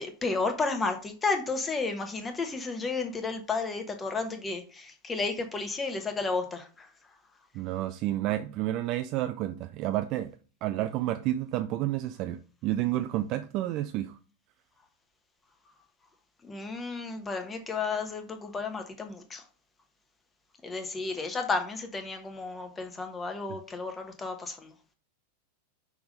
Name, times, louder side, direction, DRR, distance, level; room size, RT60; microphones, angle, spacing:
voice 1, 0.0-6.9 16.4-19.4 20.6-24.7, left 4 dB, 15° left, 1.1 m, -32 dB
voice 2, 7.5-10.3 10.6-14.2 23.5-23.6, right 14 dB, 40° right, 0.4 m, -30 dB
6.0 x 3.5 x 5.1 m
figure-of-eight pair, 90°, 0 cm